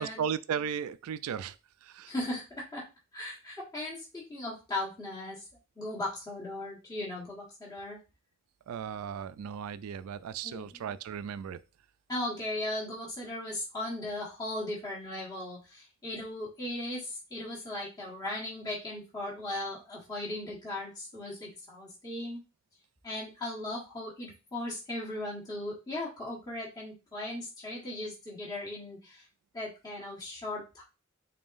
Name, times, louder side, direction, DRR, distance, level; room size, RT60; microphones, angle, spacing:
voice 1, 0.0-1.6 1.8-2.1 8.7-11.6, right 7 dB, 85° right, 0.3 m, -36 dB
voice 2, 2.1-2.9 3.1-5.4 5.8-8.0 10.4-10.8 12.1-22.4 23.0-29.2 29.5-30.8, left 1 dB, 20° left, 1.3 m, -37 dB
3.9 x 3.6 x 2.6 m
head